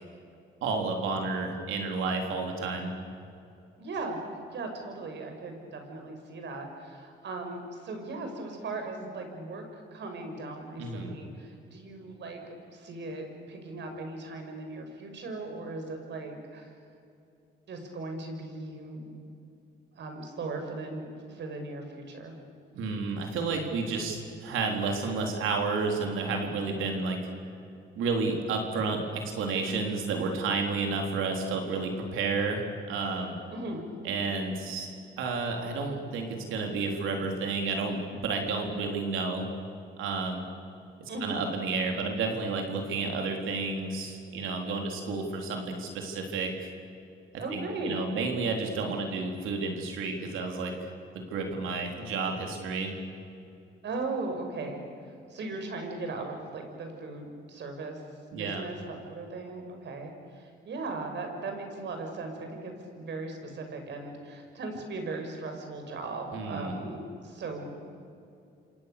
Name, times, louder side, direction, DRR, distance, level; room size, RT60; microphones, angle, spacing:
voice 1, 0.6-2.9 10.8-11.2 22.7-27.2 28.0-32.6 32.9-33.3 34.0-34.9 35.2-39.5 40.0-40.4 41.2-46.7 47.5-50.7 51.1-52.9 58.3-58.7 66.3-66.7, right 4 dB, 85° right, 2 dB, 4.0 m, -31 dB
voice 2, 3.8-16.7 17.7-19.2 19.9-22.4 33.5-33.9 41.1-41.4 47.4-48.0 53.8-54.8 55.3-58.0 58.4-68.0, right 3 dB, 65° right, 4 dB, 6.2 m, -38 dB
28.5 x 27.0 x 6.9 m, 2.6 s
cardioid pair, 90°, 20 cm